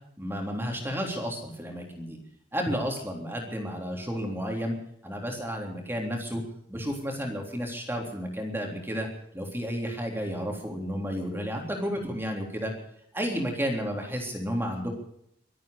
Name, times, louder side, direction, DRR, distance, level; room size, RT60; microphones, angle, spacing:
voice 1, 0.2-2.2 2.5-4.8 5.0-6.4 6.7-9.1 9.3-12.7 13.1-14.9, equal, 15° right, 1 dB, 3.5 m, -32 dB
24.5 x 8.9 x 6.7 m, 0.71 s
head